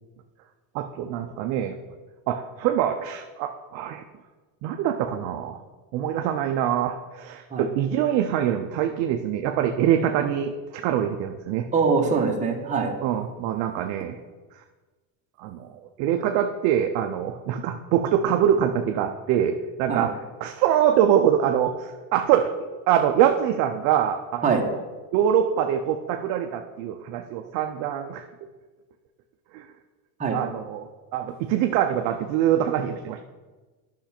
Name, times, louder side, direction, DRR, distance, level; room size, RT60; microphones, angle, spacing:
voice 1, 0.7-1.8 2.3-4.0 4.6-5.6 5.9-11.7 13.0-14.2 15.4-22.5 22.9-24.4 24.7-24.8 25.1-28.2 29.5-29.6 30.3-33.2, right 10 dB, 40° right, 4 dB, 0.5 m, -24 dB
voice 2, 11.7-12.9 19.9-20.1 24.4-24.6 30.2-30.4, right 5 dB, 15° right, 0 dB, 1.0 m, -23 dB
10.5 x 5.9 x 4.3 m, 1.3 s
supercardioid pair, 150°, 49 cm